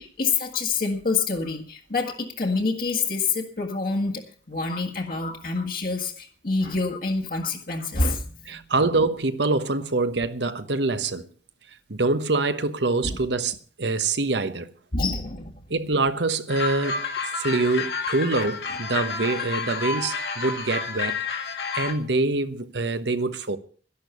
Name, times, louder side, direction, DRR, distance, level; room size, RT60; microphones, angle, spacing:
voice 1, 0.0-8.6 13.0-13.2 14.9-15.5, left 3 dB, 55° left, 1.7 m, -27 dB
voice 2, 8.5-11.2 11.9-14.7 15.7-21.2 21.7-23.6, right 3 dB, 80° right, 1.1 m, -25 dB
sound 1, 16.5-21.9, left 5 dB, 70° left, 2.3 m, -30 dB
12.5 x 11.5 x 6.8 m
head